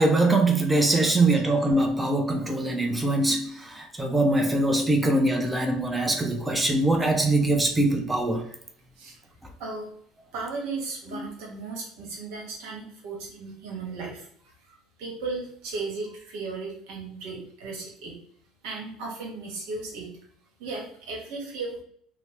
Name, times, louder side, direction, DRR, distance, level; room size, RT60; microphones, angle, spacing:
voice 1, 0.0-8.5 11.1-11.3, right 2 dB, 10° right, 3 dB, 0.5 m, -23 dB
voice 2, 10.3-14.2 15.0-18.1 18.6-20.1 20.6-21.8, right 3 dB, 85° right, 0 dB, 1.0 m, -35 dB
2.9 x 2.0 x 3.2 m, 0.64 s
supercardioid pair, 115°, 0 cm